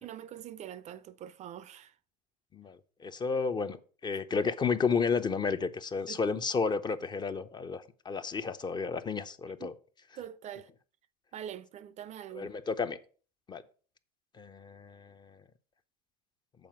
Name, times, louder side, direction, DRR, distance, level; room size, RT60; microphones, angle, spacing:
voice 1, 0.0-1.9 6.1-6.2 9.6-9.7 10.2-10.7 11.3-12.5, right 10 dB, 35° right, 0.4 m, -44 dB
voice 2, 2.5-3.8 4.0-9.7 12.3-13.0 13.5-13.6 14.4-15.4, left 5 dB, 20° left, 0.5 m, -32 dB
7.6 x 4.2 x 5.7 m
hypercardioid pair, 85°, 21 cm